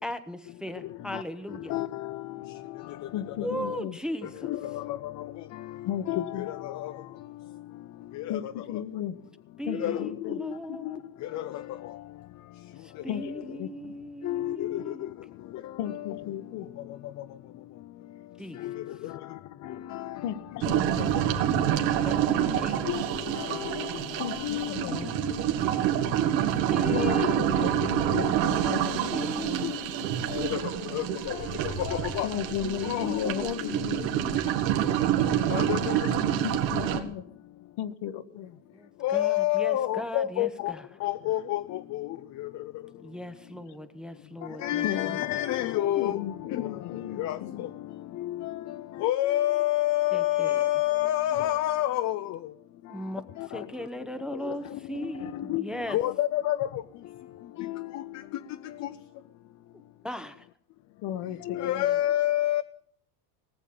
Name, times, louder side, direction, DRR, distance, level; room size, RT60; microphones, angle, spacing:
voice 1, 0.0-1.7 3.4-4.5 9.6-11.0 12.8-15.1 18.4-18.6 22.0-22.8 26.4-28.1 29.1-29.7 38.7-40.8 43.0-45.2 50.1-50.6 52.9-53.2 53.5-56.0 60.0-60.5, equal, ahead, 0.8 m, -38 dB
voice 2, 1.7-2.2 4.5-5.0 6.1-6.9 8.3-8.4 9.8-10.1 10.9-11.0 11.3-11.6 14.2-14.8 15.9-16.0 18.6-18.7 19.9-20.2 22.9-23.0 23.4-23.9 24.4-24.7 27.1-27.2 28.1-28.3 28.6-28.8 29.6-29.8 30.3-30.6 30.9-31.4 31.8-32.3 32.8-33.2 33.6-33.7 35.5-35.9 39.0-40.7 41.0-42.1 42.4-42.5 44.6-46.2 46.5-46.6 47.2-47.4 48.2-48.5 49.0-52.2 53.4-53.5 54.5-54.6 55.2-55.6 55.9-56.7 57.6-58.0 58.8-58.9 61.5-62.6, left 14 dB, 35° left, 0.5 m, -28 dB
voice 3, 3.1-4.0 5.9-6.5 8.3-9.1 9.7-10.4 13.1-13.3 13.6-13.9 15.8-16.7 20.2-21.1 24.2-25.1 26.9-29.7 32.2-34.4 36.4-37.2 37.8-38.6 44.8-45.2 46.0-47.6 61.0-61.9, left 10 dB, 55° left, 1.2 m, -35 dB
sound 1, 20.6-37.0, right 10 dB, 80° right, 2.1 m, -27 dB
19.0 x 7.2 x 8.7 m
supercardioid pair, 110°, 49 cm